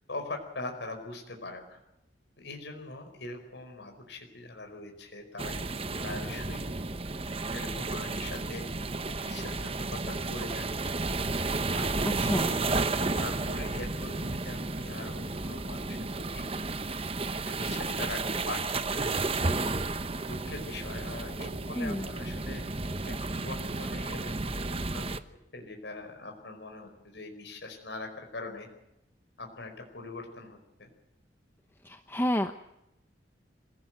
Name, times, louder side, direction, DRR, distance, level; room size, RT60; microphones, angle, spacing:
voice 1, 0.1-1.8 2.4-5.7 6.0-6.6 7.5-8.6 9.2-10.7 11.5-16.5 17.4-18.2 18.5-22.6 23.1-25.1 25.5-28.7 29.4-30.9, left 2 dB, 70° left, 3 dB, 4.9 m, -42 dB
sound 1, 5.4-25.2, right 3 dB, 30° right, 1.0 m, -32 dB
voice 2, 12.2-12.6 21.8-22.1 31.8-32.5, equal, 10° left, 8 dB, 0.9 m, -29 dB
26.0 x 17.0 x 7.9 m, 0.88 s
head